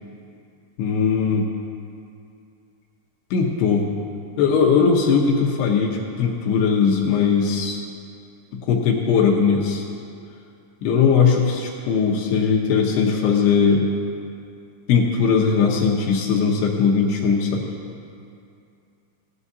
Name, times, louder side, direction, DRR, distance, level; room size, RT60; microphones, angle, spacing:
voice 1, 0.8-1.5 3.3-3.9 4.4-7.8 8.7-9.8 10.8-13.8 14.9-17.6, left 6 dB, 75° left, -1 dB, 2.8 m, -19 dB
16.5 x 11.0 x 2.7 m, 2.5 s
omnidirectional pair, 5.0 m